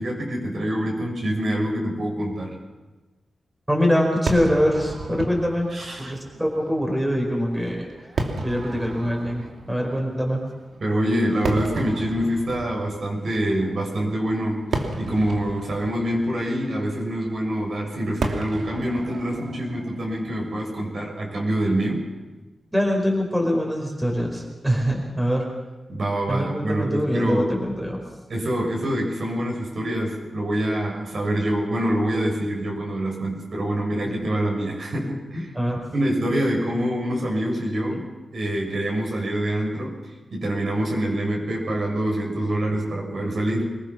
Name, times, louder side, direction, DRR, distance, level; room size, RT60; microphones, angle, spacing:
voice 1, 0.0-2.6 5.7-6.1 10.8-14.7 15.0-22.1 25.9-27.6 28.3-35.5 35.9-38.1 38.3-40.0 40.3-43.8, right 1 dB, 55° right, -1 dB, 6.4 m, -25 dB
voice 2, 3.7-5.7 6.0-7.9 8.4-10.4 22.7-25.5 26.3-28.0 35.5-35.8, equal, 5° right, 0 dB, 4.7 m, -23 dB
Fireworks, 4.3-21.6, right 3 dB, 75° right, 2.6 m, -34 dB
24.5 x 21.0 x 6.0 m, 1.2 s
wide cardioid pair, 120°, 0 cm